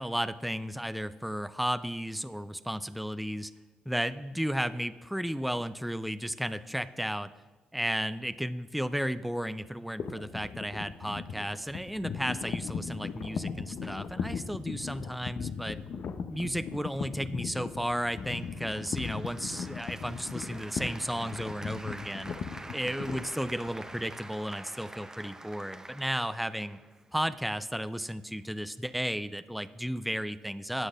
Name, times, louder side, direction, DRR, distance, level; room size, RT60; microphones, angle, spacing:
voice 1, 0.0-3.5 3.9-7.3 7.7-15.8 16.3-22.3 22.7-26.8 27.1-30.9, equal, ahead, 13 dB, 0.4 m, -34 dB
sound 1, 10.0-24.0, left 6 dB, 60° left, 0.6 m, -38 dB
Applause, 18.3-27.3, right 2 dB, 15° right, 0.8 m, -47 dB
17.0 x 8.1 x 2.4 m, 1.3 s
hypercardioid pair, 45°, 3 cm